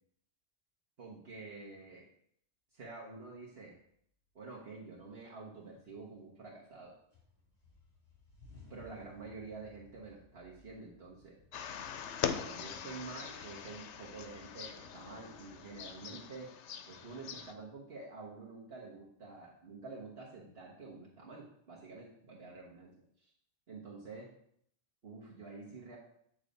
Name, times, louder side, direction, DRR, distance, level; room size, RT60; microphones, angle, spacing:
voice 1, 1.0-2.0 2.7-3.7 4.3-6.9 8.7-11.4 12.4-16.5 16.9-22.9 23.2-23.3 23.7-24.3 25.0-26.0, right 3 dB, 60° right, -4 dB, 1.3 m, -48 dB
sound 1, 4.5-5.2 5.6-6.8 7.1-15.8, left 2 dB, 40° left, 2.7 m, -62 dB
Birds twittering, 11.5-17.5, left 7 dB, 90° left, 0.9 m, -42 dB
8.3 x 3.2 x 5.1 m, 0.67 s
omnidirectional pair, 1.2 m